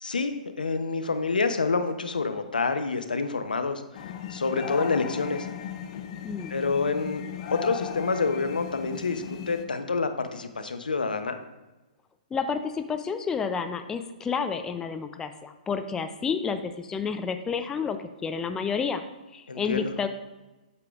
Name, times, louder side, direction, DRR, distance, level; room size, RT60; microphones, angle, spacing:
voice 1, 0.0-3.8 4.3-5.5 6.5-7.2 7.5-11.4 19.5-19.9, left 4 dB, 90° left, 9 dB, 0.7 m, -27 dB
sound 1, 3.9-9.7, left 7 dB, 50° left, 0.7 m, -37 dB
voice 2, 12.3-19.0 19.3-20.1, left 6 dB, 15° left, 9 dB, 0.4 m, -30 dB
8.2 x 6.7 x 2.4 m, 1.1 s
hypercardioid pair, 130°, 5 cm